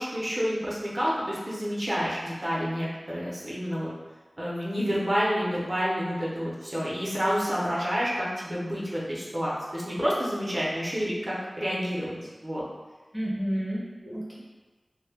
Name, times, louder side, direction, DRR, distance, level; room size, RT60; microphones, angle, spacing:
voice 1, 0.0-3.9 4.4-12.6 14.0-14.2, equal, 45° right, -6 dB, 0.7 m, -29 dB
voice 2, 13.1-14.4, equal, ahead, -6 dB, 0.6 m, -31 dB
2.2 x 2.1 x 3.4 m, 1.3 s
wide cardioid pair, 55°, 0 cm